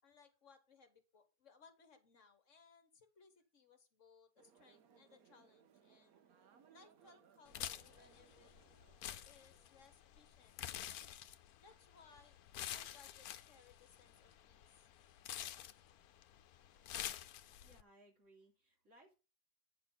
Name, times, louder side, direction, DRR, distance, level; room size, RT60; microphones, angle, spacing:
voice 1, 0.0-6.3 6.7-8.5 9.0-11.1 11.6-12.4 12.7-14.9, left 5 dB, 55° left, 9 dB, 1.6 m, -66 dB
sound 1, 4.4-9.8, right 7 dB, 80° right, 1.3 m, -68 dB
sound 2, 7.5-17.8, left 11 dB, 85° left, 1.2 m, -49 dB
voice 2, 17.6-19.2, right 1 dB, 55° right, 0 dB, 3.4 m, -65 dB
9.1 x 6.7 x 3.9 m, 0.31 s
omnidirectional pair, 1.5 m